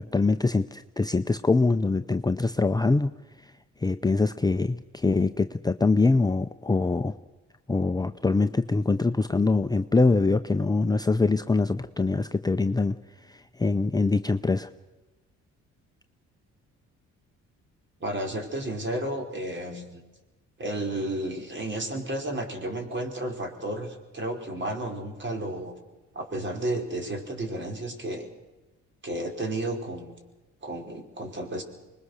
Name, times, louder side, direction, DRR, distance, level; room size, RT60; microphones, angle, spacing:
voice 1, 0.0-3.1 3.8-7.1 7.7-13.0 13.3-14.7, left 3 dB, 15° left, 8 dB, 0.7 m, -24 dB
voice 2, 18.0-20.0 20.6-25.7 26.1-28.3 29.0-30.1 30.6-31.6, right 1 dB, 40° right, 2 dB, 4.8 m, -32 dB
25.0 x 21.0 x 6.6 m, 1.2 s
cardioid pair, 90°, 30 cm